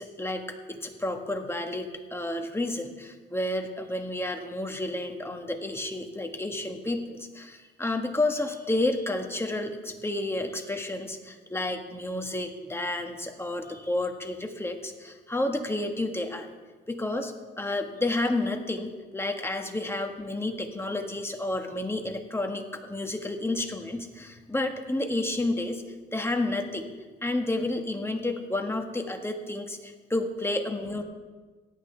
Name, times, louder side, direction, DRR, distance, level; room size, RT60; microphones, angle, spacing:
voice 1, 0.0-16.5 16.9-25.8 26.1-26.9 27.2-31.0, left 2 dB, 10° left, 4 dB, 1.4 m, -31 dB
17.5 x 11.5 x 3.3 m, 1.3 s
cardioid pair, 90°, 20 cm